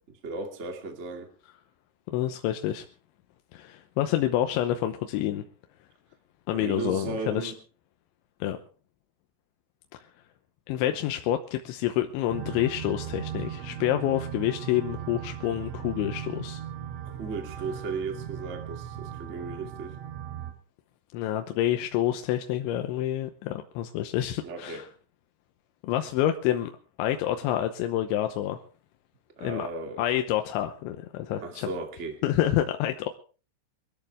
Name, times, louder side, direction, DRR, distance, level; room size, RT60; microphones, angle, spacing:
voice 1, 0.2-1.3 6.5-7.5 17.2-19.9 24.4-24.8 29.4-30.0 31.4-32.2, right 4 dB, 45° right, 4 dB, 0.9 m, -35 dB
voice 2, 2.1-2.8 3.5-5.4 6.5-7.5 8.4-8.6 10.7-16.6 21.1-24.9 25.8-26.7 27.0-28.6 29.4-29.7 30.0-31.7 32.2-33.1, left 12 dB, 80° left, 6 dB, 3.1 m, -28 dB
sound 1, 12.3-20.5, right 10 dB, 90° right, 4.5 m, -38 dB
24.0 x 13.5 x 3.5 m, 0.37 s
omnidirectional pair, 5.8 m